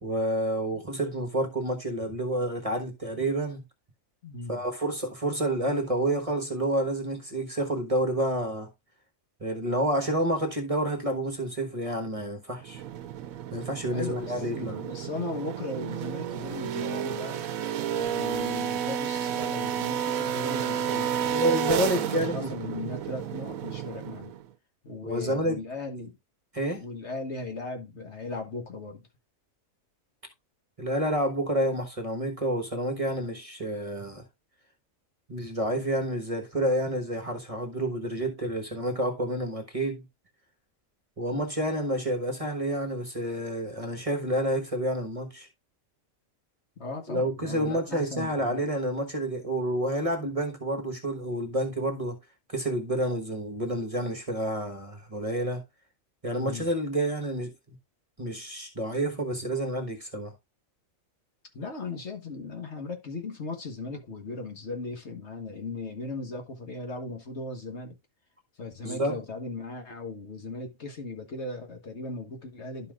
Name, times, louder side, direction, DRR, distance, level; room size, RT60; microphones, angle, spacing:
voice 1, 0.0-3.7 4.5-8.7 9.4-12.8 13.5-14.8 21.3-22.7 25.0-25.6 26.5-26.8 30.8-34.2 35.3-40.0 41.2-45.5 47.1-52.2 52.5-55.6 56.2-57.8 58.2-60.3 68.8-69.2, right 1 dB, 25° right, 1.2 m, -29 dB
voice 2, 4.2-4.6 13.9-17.4 18.0-21.4 22.1-24.3 24.8-26.2 26.7-29.0 46.8-48.6 56.4-56.7 61.5-68.0 68.6-72.9, left 3 dB, 55° left, 1.6 m, -37 dB
sound 1, 12.6-24.4, right 9 dB, 90° right, 1.1 m, -31 dB
12.0 x 5.6 x 2.4 m
omnidirectional pair, 1.4 m